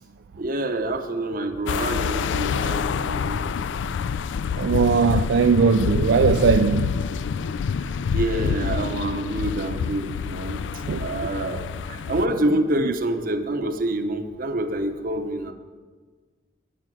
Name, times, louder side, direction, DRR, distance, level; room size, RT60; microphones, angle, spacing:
voice 1, 0.4-3.4 7.8-10.6 11.0-15.5, right 1 dB, 50° right, 0.9 m, -27 dB
sound 1, 1.7-12.3, left 6 dB, 85° left, 0.3 m, -27 dB
voice 2, 4.6-6.9 10.9-11.1, right 5 dB, 70° right, 0.3 m, -19 dB
9.3 x 8.5 x 6.1 m
head